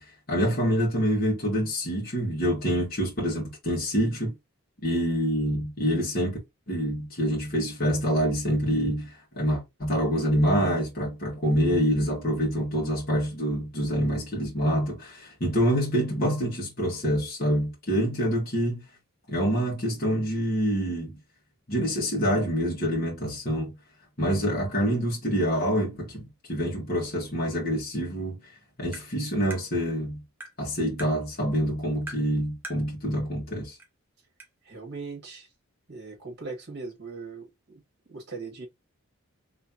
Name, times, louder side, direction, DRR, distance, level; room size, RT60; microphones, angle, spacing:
voice 1, 0.0-4.3 4.8-6.4 6.7-18.8 19.3-21.2 21.7-23.8 24.2-28.4 28.8-30.2 30.6-33.8, equal, 45° left, 1.6 m, -26 dB
Tap, 28.9-29.1 29.5-29.6 30.4-30.6 31.0-31.1 32.1-32.3 32.6-32.8 33.8-33.9 34.4-34.5, right 2 dB, 10° right, 0.8 m, -40 dB
voice 2, 34.6-35.5 35.9-37.8 38.1-38.7, right 4 dB, 50° right, 1.8 m, -39 dB
3.7 x 3.1 x 2.8 m
head